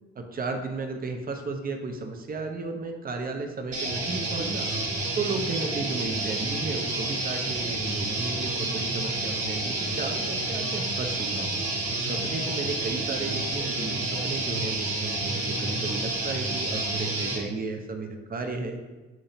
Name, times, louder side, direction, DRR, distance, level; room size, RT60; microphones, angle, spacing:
voice 1, 0.2-4.7 5.1-11.6 12.0-18.8, right 3 dB, 25° right, 4 dB, 0.7 m, -34 dB
sound 1, 3.7-17.4, right 2 dB, 45° right, 1.1 m, -29 dB
5.9 x 2.8 x 2.8 m, 1.2 s
figure-of-eight pair, 40°, 34 cm